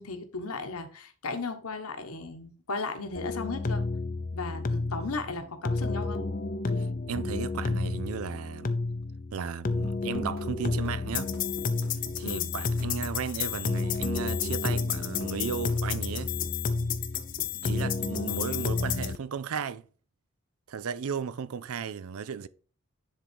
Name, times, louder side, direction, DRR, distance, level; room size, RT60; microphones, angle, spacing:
voice 1, 0.0-3.9 4.3-6.3 12.2-12.5, left 3 dB, 80° left, 1.3 m, -36 dB
sound 1, 3.2-19.2, left 4 dB, 40° left, 0.6 m, -30 dB
voice 2, 6.8-8.8 9.3-11.3 12.2-16.3 17.5-19.8 20.7-22.5, right 6 dB, 75° right, 0.4 m, -35 dB
sound 2, 10.1-17.8, equal, 45° right, 1.9 m, -48 dB
10.0 x 3.9 x 4.6 m
head